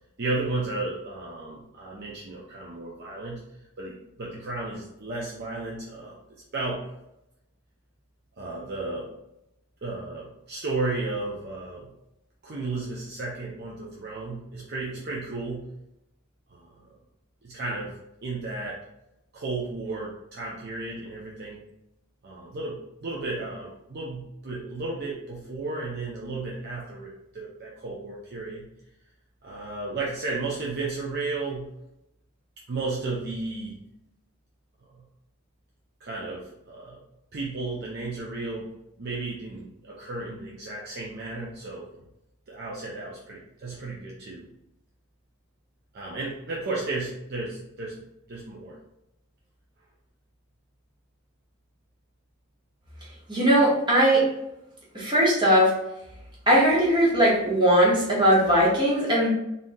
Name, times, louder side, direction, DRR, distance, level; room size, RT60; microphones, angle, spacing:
voice 1, 0.2-3.4 3.8-6.2 6.5-6.8 8.4-9.1 9.8-11.9 12.4-15.7 16.5-16.7 17.4-18.0 18.2-18.8 19.3-21.6 22.2-28.6 29.4-31.7 32.7-33.8 36.0-37.0 37.3-38.7 39.0-41.8 42.5-44.4 45.9-47.9 48.3-48.8, right 3 dB, 45° right, -4 dB, 0.5 m, -33 dB
voice 2, 53.3-54.3 54.9-55.7 56.5-59.3, equal, 20° right, -6 dB, 1.0 m, -19 dB
3.7 x 2.6 x 2.6 m, 0.86 s
head